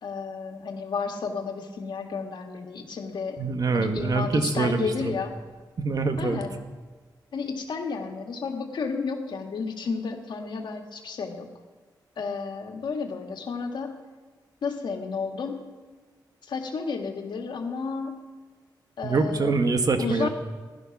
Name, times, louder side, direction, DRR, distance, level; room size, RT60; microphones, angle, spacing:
voice 1, 0.0-3.4 3.7-5.3 6.2-6.5 7.3-11.5 12.2-13.9 14.6-15.6 16.4-18.2 19.0-19.5 20.0-20.3, left 5 dB, 80° left, 3 dB, 1.8 m, -32 dB
voice 2, 3.4-5.1 5.8-6.4 19.0-20.3, right 4 dB, 55° right, 7 dB, 1.4 m, -25 dB
15.5 x 11.0 x 6.0 m, 1.4 s
wide cardioid pair, 100°, 8 cm